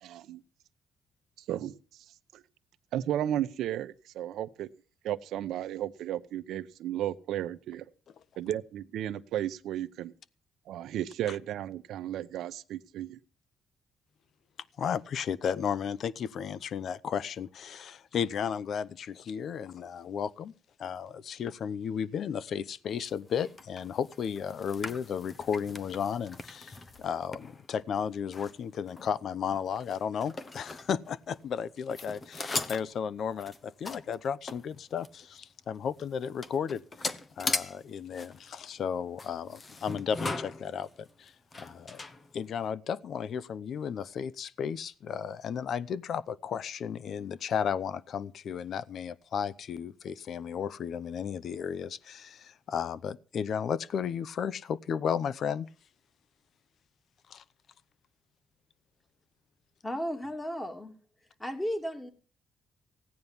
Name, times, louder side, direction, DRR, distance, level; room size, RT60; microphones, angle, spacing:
voice 1, 0.0-0.4 1.5-1.7 2.3-2.4 2.9-4.7 5.0-7.8 8.4-10.1 10.7-13.2, right 11 dB, 80° right, 0.9 m, -34 dB
voice 2, 14.8-20.5 20.8-36.8 37.4-42.0 42.3-55.7 57.3-57.4, left 7 dB, 65° left, 0.7 m, -34 dB
sound 1, 23.0-31.6 31.9-35.2 35.7-35.8 36.0-42.7, left 3 dB, 35° left, 1.1 m, -40 dB
voice 3, 59.8-61.0 61.4-62.1, equal, 15° left, 3.0 m, -34 dB
16.5 x 9.5 x 7.1 m
cardioid pair, 90°, 0 cm